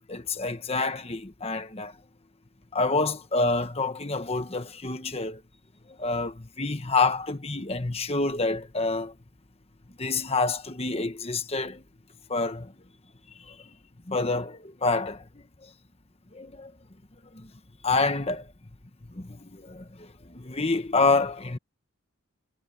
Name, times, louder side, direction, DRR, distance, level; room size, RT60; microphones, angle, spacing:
voice 1, 0.1-1.9 2.7-5.4 6.0-9.1 10.0-11.8 12.3-12.7 13.5-13.6 14.1-15.2 16.3-16.7 17.3-17.5 17.8-18.5 19.1-21.6, left 3 dB, 25° left, 1.1 m, -27 dB
head